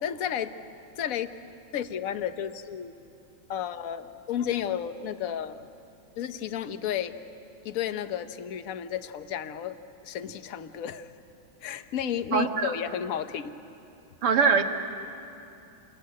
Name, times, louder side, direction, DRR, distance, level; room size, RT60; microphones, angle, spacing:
voice 1, 0.0-0.5 1.0-1.3 1.7-2.9 3.5-5.7 6.2-7.2 7.6-9.8 10.0-11.1 11.6-13.6, left 9 dB, 55° left, 10 dB, 1.0 m, -32 dB
voice 2, 12.3-12.7 14.2-14.6, right 5 dB, 80° right, 5 dB, 2.4 m, -22 dB
29.0 x 21.5 x 9.5 m, 2.8 s
omnidirectional pair, 2.4 m